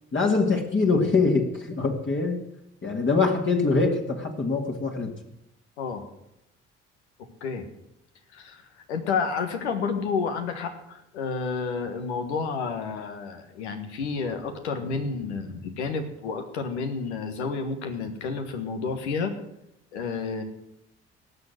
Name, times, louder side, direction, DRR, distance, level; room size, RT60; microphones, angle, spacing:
voice 1, 0.1-2.4 2.8-5.2, left 4 dB, 35° left, 1 dB, 2.2 m, -23 dB
voice 2, 8.3-8.6 8.9-19.3 19.9-20.4, left 5 dB, 80° left, 7 dB, 1.5 m, -30 dB
18.0 x 6.8 x 7.8 m, 0.82 s
hypercardioid pair, 50°, 33 cm